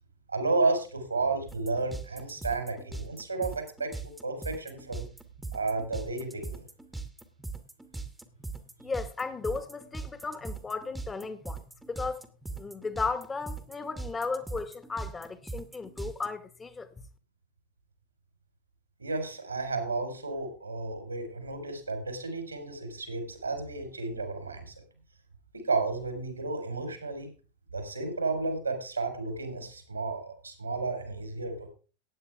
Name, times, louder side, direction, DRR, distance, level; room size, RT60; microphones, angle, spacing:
voice 1, 0.3-5.1 5.5-6.6 19.0-24.7 25.5-27.3 27.7-31.7, right 3 dB, 80° right, 4.1 m, -32 dB
sound 1, 1.5-16.3, right 3 dB, 5° right, 1.5 m, -40 dB
voice 2, 8.8-12.2 12.5-16.9, left 4 dB, 15° left, 1.6 m, -35 dB
15.5 x 9.4 x 3.5 m
figure-of-eight pair, 90°, 0 cm